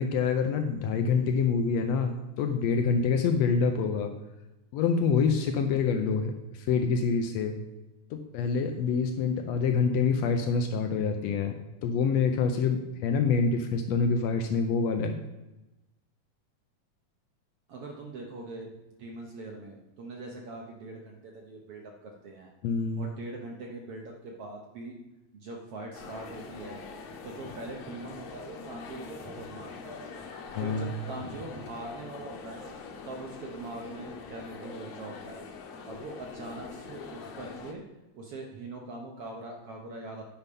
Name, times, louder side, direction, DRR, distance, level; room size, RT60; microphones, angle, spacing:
voice 1, 0.0-4.1 4.7-7.5 8.1-15.2 22.6-23.1 30.5-30.9, left 5 dB, 85° left, 6 dB, 1.5 m, -26 dB
voice 2, 17.7-18.7 19.0-22.5 23.0-24.9 25.3-26.8 27.2-30.0 30.6-32.8 33.0-35.4 35.8-37.8 38.1-40.2, right 2 dB, 65° right, 0 dB, 1.5 m, -42 dB
sound 1, 25.9-37.7, left 4 dB, 65° left, 1.9 m, -43 dB
10.0 x 5.5 x 5.3 m, 1.0 s
omnidirectional pair, 3.7 m